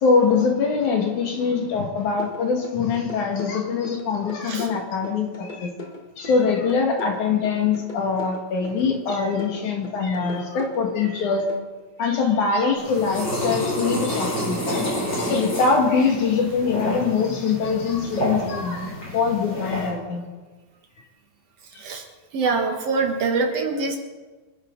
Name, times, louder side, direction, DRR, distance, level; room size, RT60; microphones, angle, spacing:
voice 1, 0.0-5.7 6.2-11.5 12.0-14.9 15.2-20.2, left 5 dB, 80° left, 2 dB, 3.5 m, -23 dB
sound 1, 2.2-11.6, left 2 dB, 50° left, 0.5 m, -39 dB
sound 2, 12.8-19.9, equal, 35° left, 6.5 m, -29 dB
voice 2, 22.3-24.0, right 4 dB, 60° right, 3 dB, 2.3 m, -24 dB
26.0 x 10.5 x 3.9 m, 1.3 s
omnidirectional pair, 3.4 m